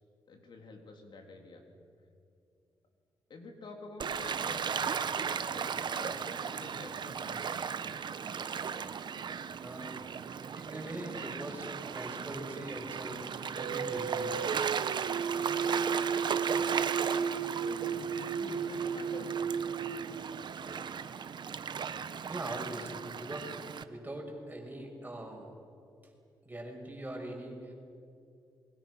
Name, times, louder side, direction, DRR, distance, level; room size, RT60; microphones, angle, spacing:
voice 1, 0.3-1.6 3.3-5.0 5.5-7.8 15.9-16.2 17.5-19.3, left 2 dB, 65° left, 3 dB, 3.5 m, -49 dB
Gull seagull / Waves surf, 4.0-23.8, right 7 dB, 60° right, 1.1 m, -36 dB
voice 2, 9.6-10.0 10.5-11.7 11.9-13.2 13.5-14.3 22.3-25.5 26.4-27.7, right 1 dB, 20° right, 0 dB, 6.6 m, -42 dB
sound 1, 13.5-20.9, right 6 dB, 85° right, 1.1 m, -34 dB
27.5 x 22.0 x 6.5 m, 2.5 s
cardioid pair, 70°, 9 cm